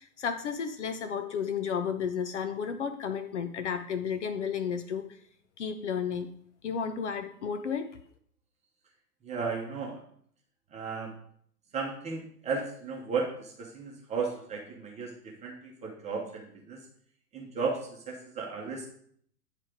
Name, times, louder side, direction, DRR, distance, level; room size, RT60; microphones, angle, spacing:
voice 1, 0.0-5.1 5.6-6.3 6.6-7.9, left 7 dB, 45° left, 8 dB, 0.7 m, -32 dB
voice 2, 9.2-10.0 10.7-11.1 11.7-16.9 17.3-18.9, right 4 dB, 15° right, -1 dB, 1.0 m, -35 dB
9.6 x 3.3 x 5.0 m, 0.62 s
figure-of-eight pair, 115°, 50 cm